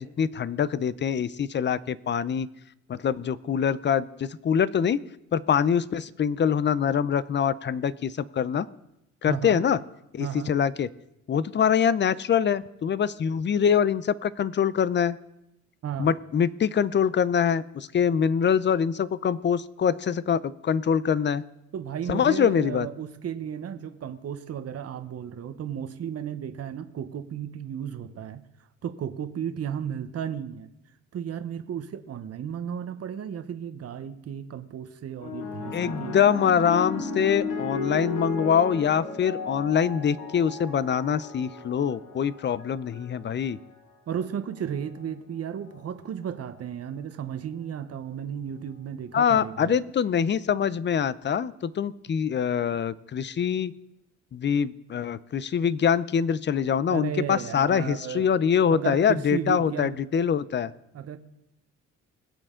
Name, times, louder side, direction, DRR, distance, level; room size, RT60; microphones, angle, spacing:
voice 1, 0.0-2.5 2.9-5.0 5.3-8.7 9.2-9.8 10.1-10.9 11.3-15.2 16.0-21.4 22.1-22.9 35.7-43.6 49.1-53.7 54.3-60.7, left 7 dB, 35° left, 18 dB, 0.6 m, -24 dB
voice 2, 9.3-9.6 10.2-10.5 15.8-16.1 21.7-28.4 28.8-30.7 31.1-36.2 44.1-49.8 56.9-58.3 58.7-59.9 60.9-61.2, right 8 dB, 55° right, 9 dB, 1.0 m, -34 dB
sound 1, 35.2-43.8 44.7-45.1, left 4 dB, 85° left, 2.4 m, -35 dB
21.0 x 7.7 x 3.8 m, 0.86 s
cardioid pair, 90°, 30 cm